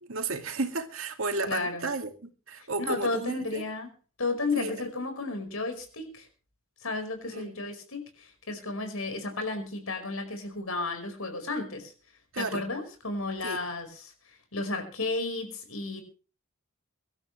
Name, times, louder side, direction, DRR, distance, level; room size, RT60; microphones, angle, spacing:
voice 1, 0.0-3.7 4.6-4.7 7.3-7.6 12.3-12.6 13.4-13.6, right 3 dB, 70° right, 2.3 m, -33 dB
voice 2, 1.5-1.9 2.6-3.9 4.2-6.3 6.8-11.9 12.4-16.0, left 3 dB, 80° left, 5.1 m, -33 dB
24.5 x 12.5 x 3.3 m
head